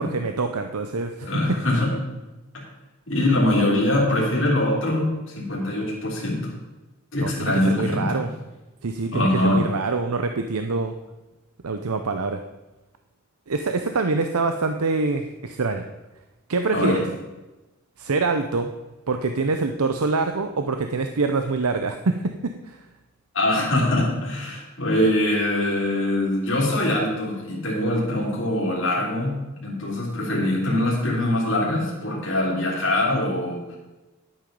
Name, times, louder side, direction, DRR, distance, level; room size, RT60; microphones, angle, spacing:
voice 1, 0.0-1.6 7.2-8.3 8.8-10.9 11.6-12.4 13.5-15.8 16.5-17.0 18.0-18.7 19.1-22.8, right 3 dB, 85° right, 6 dB, 0.7 m, -25 dB
voice 2, 1.2-2.0 2.5-2.6 3.1-6.6 7.1-8.2 9.1-9.7 16.7-17.0 23.3-29.4 29.6-33.8, left 1 dB, 55° left, -5 dB, 3.2 m, -23 dB
10.5 x 8.9 x 5.3 m, 1.1 s
head